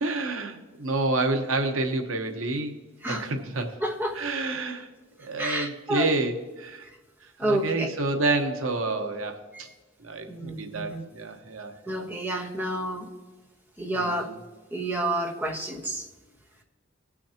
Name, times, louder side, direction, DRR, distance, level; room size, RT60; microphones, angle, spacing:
voice 1, 0.0-2.8 3.1-3.8 4.1-4.9 5.2-6.9 7.4-9.7 10.0-12.0 13.9-14.4, right 2 dB, 90° right, 5 dB, 1.1 m, -29 dB
voice 2, 3.8-4.2 5.4-6.1 7.4-7.9 9.5-9.6 10.3-11.0 11.9-13.1 13.8-14.3 14.7-16.0, right 1 dB, 10° right, 0 dB, 1.2 m, -29 dB
18.5 x 6.2 x 2.9 m, 1.3 s
head